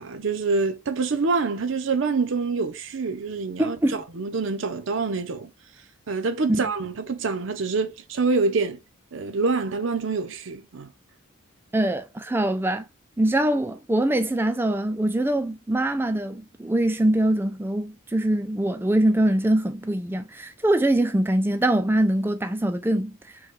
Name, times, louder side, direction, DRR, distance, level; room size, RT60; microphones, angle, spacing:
voice 1, 0.0-3.8 4.1-5.5 6.1-8.8 9.1-10.9, right 4 dB, 65° right, 0.6 m, -26 dB
voice 2, 3.6-4.0 6.5-6.6 11.7-12.8 13.2-23.4, right 1 dB, 10° right, 0.3 m, -23 dB
4.6 x 2.3 x 3.1 m
head